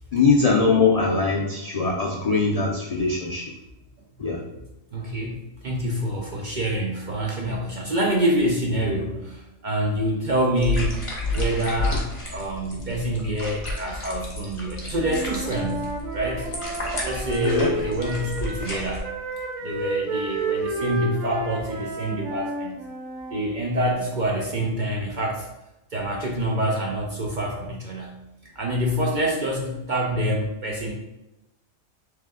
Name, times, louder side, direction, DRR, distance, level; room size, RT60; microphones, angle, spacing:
voice 1, 0.1-3.5 4.2-4.4 17.4-17.7, left 4 dB, 85° left, -2 dB, 0.3 m, -21 dB
voice 2, 4.9-11.1 11.3-16.5 17.0-19.1 19.6-22.8 23.3-25.5 25.9-28.1 28.6-30.9, right 1 dB, 55° right, -1 dB, 0.5 m, -26 dB
sound 1, 10.6-19.0, left 2 dB, 25° left, 0.9 m, -31 dB
Wind instrument woodwind instrument, 15.0-18.7 19.0-23.4, right 2 dB, 80° right, 1.1 m, -31 dB
3.5 x 3.3 x 3.5 m, 0.94 s
omnidirectional pair, 1.4 m